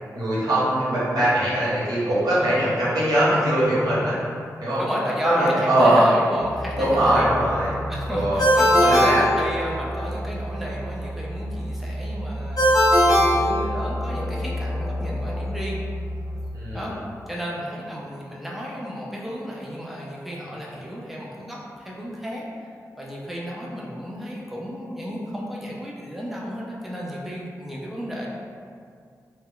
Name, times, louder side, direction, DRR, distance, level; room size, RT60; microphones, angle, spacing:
voice 1, 0.1-4.2 4.6-4.8 5.2-6.1 6.7-7.8 8.1-8.4 8.8-9.2 16.5-16.9, right 1 dB, 80° right, -9 dB, 0.9 m, -21 dB
voice 2, 2.3-2.6 4.8-7.3 7.9-15.8 16.7-17.0 17.3-22.5 23.0-28.3, equal, 5° right, -5 dB, 0.5 m, -32 dB
sound 1, 6.4-16.5, equal, 85° left, 0.4 m, -32 dB
Ringtone, 8.4-10.1 12.6-14.2, equal, 65° left, 0.8 m, -19 dB
2.2 x 2.0 x 3.7 m, 2.2 s
cardioid pair, 60°, 7 cm